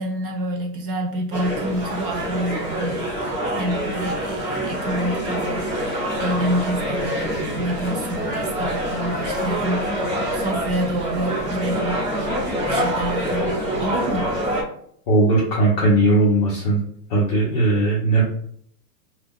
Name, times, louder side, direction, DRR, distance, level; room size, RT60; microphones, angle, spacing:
voice 1, 0.0-3.0 3.5-12.0 12.7-14.2, right 1 dB, 35° right, 1 dB, 0.4 m, -28 dB
sound 1, 1.3-14.6, equal, 15° right, 0.8 m, -26 dB
voice 2, 15.1-16.8 17.1-18.3, right 2 dB, 30° left, -5 dB, 0.5 m, -18 dB
2.3 x 2.1 x 3.4 m, 0.65 s
hypercardioid pair, 155°, 48 cm